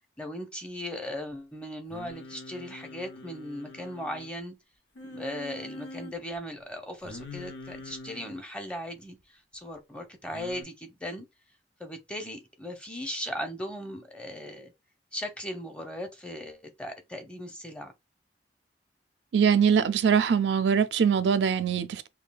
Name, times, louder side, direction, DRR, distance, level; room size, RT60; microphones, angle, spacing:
voice 1, 0.2-4.6 5.1-11.2 11.8-14.7 15.1-17.9, equal, 5° left, 0.7 m, -38 dB
Singing, 1.9-4.3 5.0-6.1 7.0-8.4 10.3-10.6, left 2 dB, 90° left, 0.8 m, -44 dB
voice 2, 19.3-22.1, right 7 dB, 80° right, 0.4 m, -23 dB
5.5 x 2.3 x 2.3 m
head